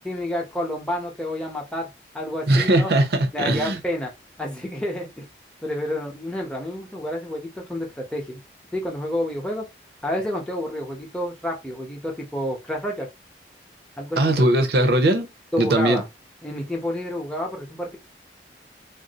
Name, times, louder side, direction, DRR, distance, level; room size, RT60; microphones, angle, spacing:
voice 1, 0.0-1.9 2.1-2.9 3.3-4.1 4.4-5.3 5.6-8.4 8.7-9.7 10.0-13.1 14.0-14.5 15.5-16.1 16.4-18.0, left 1 dB, 5° left, 0.7 m, -29 dB
voice 2, 2.5-3.8 14.2-15.3 15.6-16.0, right 1 dB, 65° right, 0.7 m, -19 dB
2.6 x 2.1 x 4.0 m
head